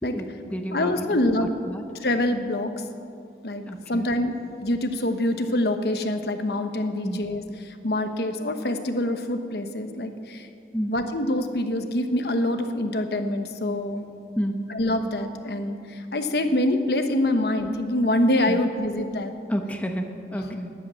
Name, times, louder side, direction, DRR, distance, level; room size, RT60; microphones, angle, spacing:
voice 1, 0.0-1.8 3.7-4.1 7.0-7.2 10.7-10.9 14.4-14.6 18.5-18.6 19.5-20.7, equal, 10° left, 4 dB, 0.9 m, -30 dB
voice 2, 0.7-1.5 2.0-2.8 3.4-10.5 10.9-14.1 14.7-19.3, left 1 dB, 65° left, 7 dB, 1.1 m, -25 dB
12.5 x 11.0 x 8.4 m, 2.4 s
head